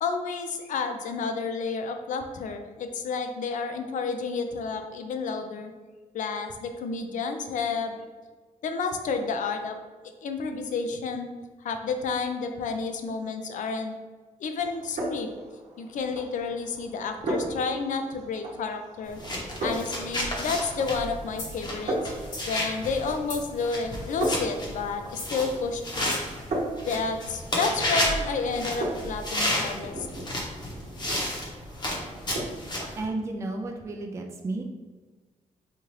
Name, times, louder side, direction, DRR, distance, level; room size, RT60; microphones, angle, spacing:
voice 1, 0.0-5.7 6.1-8.0 8.6-9.8 10.2-11.3 11.6-13.9 14.4-15.3 15.8-19.2 19.6-22.0 22.5-26.2 26.8-30.1, left 4 dB, 70° left, 6 dB, 0.4 m, -30 dB
sound 1, 14.6-32.8, right 1 dB, 60° right, 0.8 m, -37 dB
sound 2, 19.1-33.0, left 1 dB, 35° left, 0.9 m, -32 dB
sound 3, 21.4-21.6 22.2-22.5 23.3-23.6 24.0-24.5 25.1-25.4 26.1-26.3, left 2 dB, 90° left, 1.4 m, -40 dB
voice 2, 33.0-34.6, right 2 dB, 20° right, 1 dB, 0.3 m, -32 dB
4.3 x 2.4 x 3.1 m, 1.4 s
wide cardioid pair, 125°, 14 cm